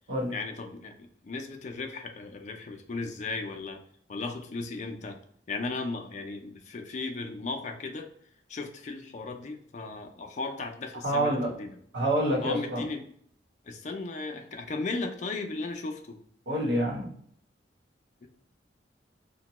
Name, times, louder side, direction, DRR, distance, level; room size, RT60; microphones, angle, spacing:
voice 1, 0.3-3.8 4.1-5.2 5.5-8.1 8.5-11.8 12.4-13.1 13.6-16.2 18.2-18.3, left 3 dB, 40° left, 4 dB, 0.4 m, -36 dB
voice 2, 11.0-11.5 11.9-12.8 16.5-17.1, right 1 dB, 75° right, -2 dB, 1.0 m, -27 dB
2.9 x 2.2 x 2.9 m, 0.63 s
head